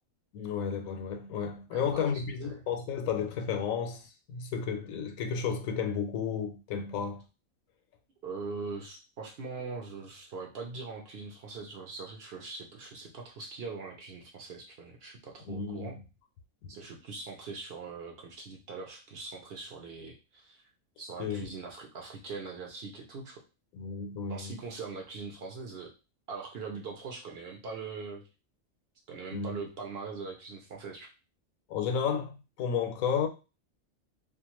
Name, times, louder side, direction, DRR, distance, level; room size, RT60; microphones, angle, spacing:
voice 1, 0.3-7.2 15.5-16.0 21.2-21.4 23.7-24.5 29.3-29.6 31.7-33.3, left 7 dB, 90° left, 1.0 m, -32 dB
voice 2, 1.7-2.6 8.2-16.0 16.7-20.6 21.0-23.4 24.3-25.9 26.3-28.2 29.1-31.1, right 4 dB, 60° right, 0.7 m, -42 dB
2.5 x 2.3 x 2.9 m
omnidirectional pair, 1.4 m